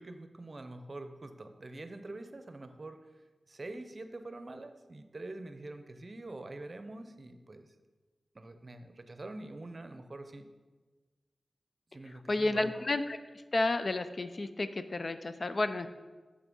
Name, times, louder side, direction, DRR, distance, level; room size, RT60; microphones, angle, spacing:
voice 1, 0.0-3.0 3.5-7.7 8.3-10.5 11.9-12.7, right 2 dB, 45° right, 8 dB, 0.6 m, -45 dB
voice 2, 12.3-13.2 13.5-15.9, left 2 dB, 50° left, 10 dB, 0.4 m, -31 dB
6.4 x 5.9 x 5.3 m, 1.3 s
cardioid pair, 60°, 0 cm